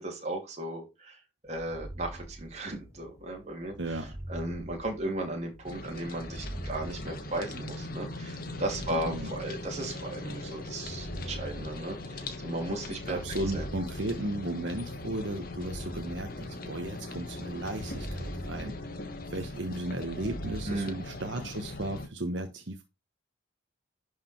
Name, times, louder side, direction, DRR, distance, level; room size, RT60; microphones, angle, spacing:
voice 1, 0.0-13.2 13.5-13.6 20.6-21.0, right 1 dB, 35° right, 1 dB, 3.0 m, -36 dB
sound 1, 1.5-3.0 3.8-5.5 6.1-7.9 8.5-10.0 10.7-12.5 13.0-14.7 15.4-17.1 17.7-19.5 20.0-20.8, right 1 dB, 15° right, 0.7 m, -43 dB
sound 2, 2.7-10.1, left 1 dB, 25° left, 1.9 m, -55 dB
sound 3, 5.6-22.1, left 2 dB, 45° left, 1.5 m, -40 dB
voice 2, 8.9-9.3 13.1-18.7 19.3-22.9, right 1 dB, 65° right, 6 dB, 1.2 m, -35 dB
11.5 x 5.0 x 4.5 m, 0.25 s
head